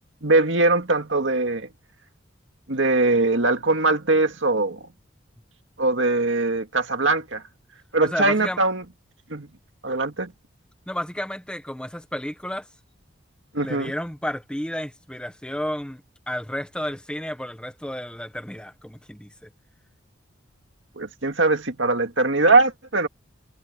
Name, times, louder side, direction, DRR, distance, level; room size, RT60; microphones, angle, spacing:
voice 1, 0.2-1.7 2.7-4.9 5.8-7.4 7.9-8.8 9.3-9.5 9.8-10.3 13.5-13.9 21.0-23.1, right 3 dB, 70° right, 2.1 m, -21 dB
voice 2, 8.0-8.6 10.9-12.7 13.6-16.0 16.3-19.5, equal, 5° left, 1.3 m, -32 dB
head